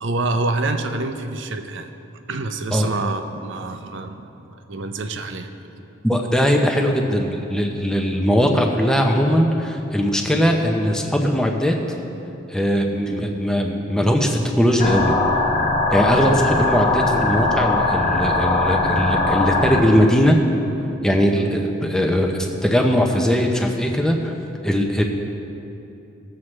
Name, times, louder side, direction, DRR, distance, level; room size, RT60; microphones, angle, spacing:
voice 1, 0.0-1.9 2.3-5.8 10.3-10.6 16.2-16.4 21.3-21.5, right 2 dB, 65° right, 7 dB, 0.6 m, -27 dB
voice 2, 6.0-11.8 12.5-15.1 15.9-20.4 21.0-24.3 24.6-25.0, equal, 5° left, 2 dB, 0.7 m, -20 dB
sound 1, 14.8-19.8, left 2 dB, 30° left, 1.1 m, -20 dB
17.5 x 7.5 x 3.2 m, 2.9 s
head